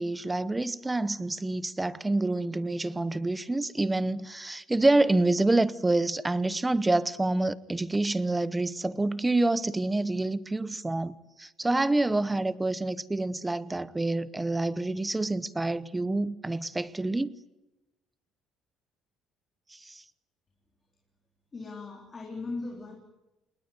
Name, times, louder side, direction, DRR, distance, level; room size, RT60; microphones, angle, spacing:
voice 1, 0.0-17.3 19.8-20.0, right 2 dB, 10° right, 0.9 m, -27 dB
voice 2, 21.5-23.0, left 3 dB, 20° left, 3.8 m, -38 dB
29.0 x 20.5 x 9.4 m
cardioid pair, 170°, 0 cm